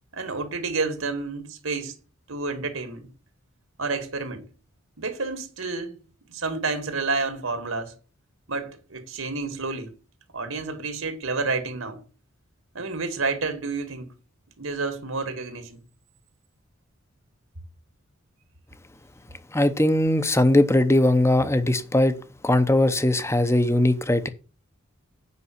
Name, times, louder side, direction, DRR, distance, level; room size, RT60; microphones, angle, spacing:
voice 1, 0.1-1.9 2.3-3.1 3.8-4.5 5.0-6.0 6.3-8.0 8.5-9.9 10.3-12.0 12.7-14.1 14.6-15.8, right 3 dB, 75° right, 2.2 m, -30 dB
voice 2, 19.5-22.1 22.4-24.3, left 1 dB, 15° left, 0.8 m, -20 dB
8.5 x 5.5 x 7.8 m
head